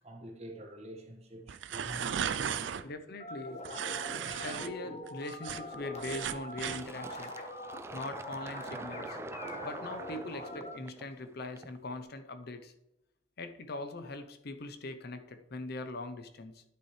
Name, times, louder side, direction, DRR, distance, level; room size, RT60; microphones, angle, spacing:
voice 1, 0.0-2.7, equal, 35° right, 1.6 m, -47 dB
sound 1, 1.5-2.8 3.6-4.7 5.1-6.8, right 8 dB, 70° right, 0.5 m, -36 dB
voice 2, 2.8-3.7 4.4-7.3 7.9-9.2 9.6-12.7 13.4-16.6, left 2 dB, 55° left, 0.8 m, -41 dB
sound 2, 3.2-10.8, left 1 dB, 35° left, 1.2 m, -43 dB
Fill (with liquid), 6.6-12.0, right 2 dB, 15° right, 0.4 m, -46 dB
10.5 x 6.4 x 3.3 m
head